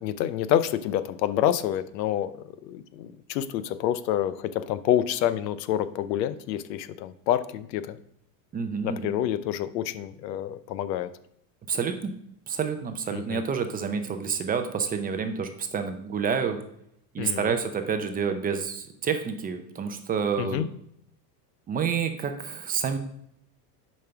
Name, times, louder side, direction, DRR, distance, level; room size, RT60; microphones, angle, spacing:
voice 1, 0.0-2.3 2.6-8.0 8.8-11.1 13.1-13.4 17.2-17.6 20.4-20.7, left 11 dB, 90° left, 14 dB, 0.8 m, -28 dB
voice 2, 8.5-9.1 11.7-12.1 12.5-16.6 17.1-20.6 21.7-23.0, right 6 dB, 20° right, 7 dB, 0.6 m, -28 dB
7.2 x 5.4 x 5.8 m, 0.72 s
supercardioid pair, 140°, 49 cm